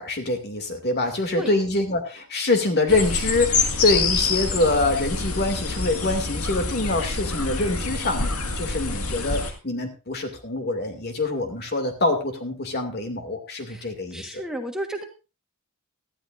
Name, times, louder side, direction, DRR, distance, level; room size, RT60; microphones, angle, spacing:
voice 1, 0.0-14.3, left 2 dB, 50° left, 6 dB, 2.4 m, -25 dB
voice 2, 1.0-1.5 13.7-15.0, right 1 dB, 5° right, 3 dB, 1.4 m, -34 dB
sound 1, 2.9-9.5, left 4 dB, 80° left, 1.9 m, -26 dB
18.0 x 12.5 x 2.6 m, 0.30 s
head